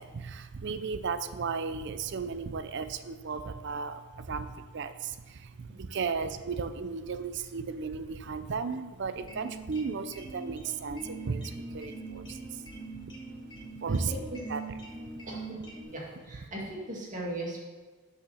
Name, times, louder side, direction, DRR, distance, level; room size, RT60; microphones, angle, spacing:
voice 1, 0.0-12.6 13.8-14.1 14.5-14.6 15.1-15.2, right 5 dB, 55° right, 11 dB, 0.5 m, -35 dB
sound 1, 9.2-15.8, right 2 dB, 20° left, 1.5 m, -43 dB
voice 2, 13.8-14.4 15.3-15.6 15.9-17.6, right 1 dB, 35° right, -3 dB, 1.9 m, -38 dB
6.6 x 5.7 x 6.4 m, 1.4 s
head